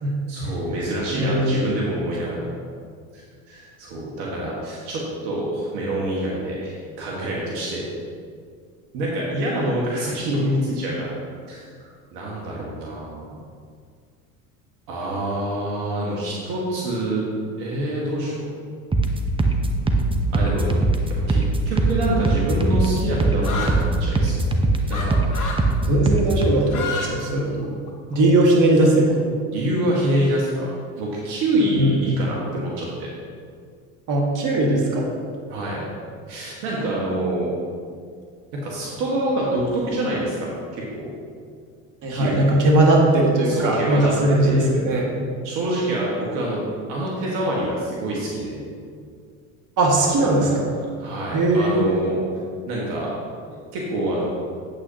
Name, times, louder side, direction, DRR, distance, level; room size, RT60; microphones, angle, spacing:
voice 1, 0.3-2.5 3.1-3.2 3.5-7.9 8.9-11.1 11.5-13.2 14.9-17.2 17.6-18.5 20.3-20.7 21.3-24.4 24.9-25.5 29.5-30.7 31.0-33.1 35.5-35.9 36.3-37.5 38.5-41.1 42.1-42.6 43.4-44.7 45.4-46.6 46.9-48.6 50.0-50.5 51.0-52.2 52.7-53.1 53.7-54.3, right 1 dB, 70° right, -4 dB, 1.8 m, -26 dB
voice 2, 1.2-1.7 25.8-27.7 28.1-29.2 31.7-32.0 34.1-35.1 42.0-45.1 49.8-50.7 51.3-52.0, right 1 dB, 50° right, -2 dB, 2.1 m, -19 dB
sound 1, 18.9-26.5, right 2 dB, 15° right, 0.8 m, -21 dB
sound 2, 23.4-23.8 24.9-25.1 25.3-25.6 26.6-27.1 27.4-28.1, left 5 dB, 50° left, 2.1 m, -29 dB
8.6 x 8.3 x 2.9 m, 2.1 s
hypercardioid pair, 75°, 40 cm